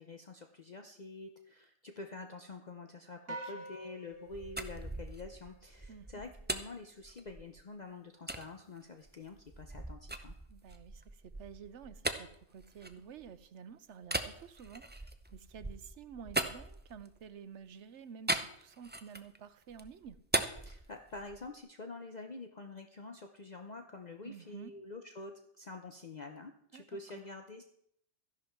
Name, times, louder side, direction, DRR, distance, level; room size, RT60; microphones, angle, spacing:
voice 1, 0.0-10.3 20.6-27.6, left 3 dB, 40° left, 5 dB, 0.8 m, -47 dB
sound 1, 3.3-5.8, right 2 dB, 55° right, 1.9 m, -47 dB
voice 2, 3.3-3.7 5.9-6.2 10.5-20.2 24.2-24.7 26.7-26.9, right 7 dB, 80° right, 13 dB, 1.1 m, -51 dB
sound 2, 4.1-7.6 8.3-8.5 9.0-13.4 14.0-17.3 18.3-19.4 19.7-21.5, right 2 dB, 10° right, 0.5 m, -39 dB
13.5 x 11.0 x 4.5 m, 0.69 s
omnidirectional pair, 1.2 m